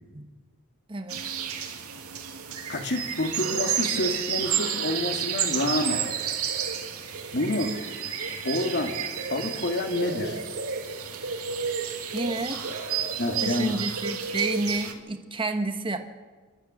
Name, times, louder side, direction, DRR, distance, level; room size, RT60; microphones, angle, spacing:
voice 1, 0.9-1.2 12.1-12.6 13.4-16.0, right 2 dB, 25° right, 6 dB, 1.3 m, -30 dB
sound 1, 1.1-14.9, right 7 dB, 80° right, 2.4 m, -31 dB
voice 2, 2.7-6.1 7.3-7.8 8.4-9.0 9.3-10.4 13.2-13.7, left 2 dB, 50° left, 5 dB, 2.2 m, -28 dB
28.0 x 12.5 x 7.7 m, 1.4 s
head